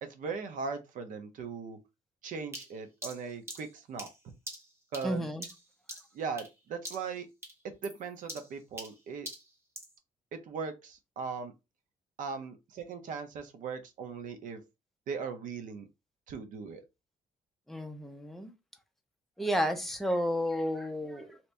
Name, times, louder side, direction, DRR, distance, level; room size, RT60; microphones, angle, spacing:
voice 1, 0.0-1.8 2.2-4.1 4.9-5.3 6.1-7.3 7.8-9.3 10.3-11.5 12.2-14.6 15.1-15.9 16.3-16.8, right 5 dB, 70° right, 0.7 m, -39 dB
sound 1, 2.5-6.6 6.8-7.2 7.4-10.0, right 1 dB, 20° right, 1.1 m, -45 dB
voice 2, 5.0-5.4 17.7-18.5 19.4-21.4, equal, ahead, 0.5 m, -32 dB
2.8 x 2.6 x 3.3 m
cardioid pair, 150°, 14 cm